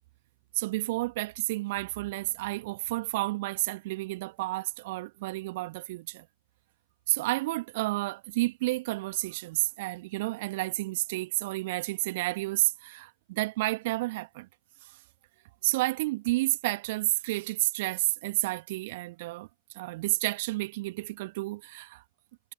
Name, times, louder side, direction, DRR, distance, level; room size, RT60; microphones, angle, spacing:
voice 1, 0.5-6.3 7.1-14.5 14.8-15.0 15.6-22.0, right 20 dB, 50° right, 1.8 m, -31 dB
figure-of-eight pair, 90°, 0 cm